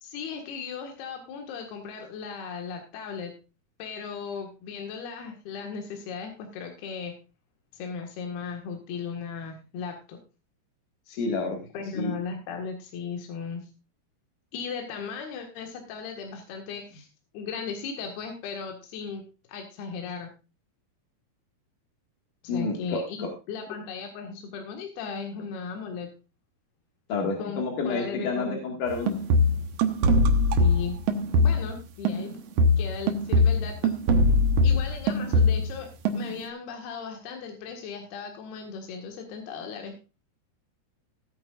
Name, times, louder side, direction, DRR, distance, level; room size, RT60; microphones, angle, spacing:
voice 1, 0.0-3.3 3.8-7.1 7.7-10.2 11.7-13.7 14.5-17.1 17.3-19.2 19.5-20.3 22.4-26.1 27.4-28.6 30.6-31.0 31.3-32.4 32.8-33.9 34.6-35.9 36.1-39.9, left 5 dB, 75° left, 3 dB, 3.6 m, -36 dB
voice 2, 11.1-11.6 11.9-12.1 22.5-23.3 27.1-29.2 34.6-34.7, left 4 dB, 55° left, 1 dB, 3.2 m, -29 dB
sound 1, 28.9-31.8 32.0-35.8 36.0-36.5, left 1 dB, 85° right, 1.4 m, -22 dB
17.5 x 9.1 x 2.5 m, 0.30 s
omnidirectional pair, 4.7 m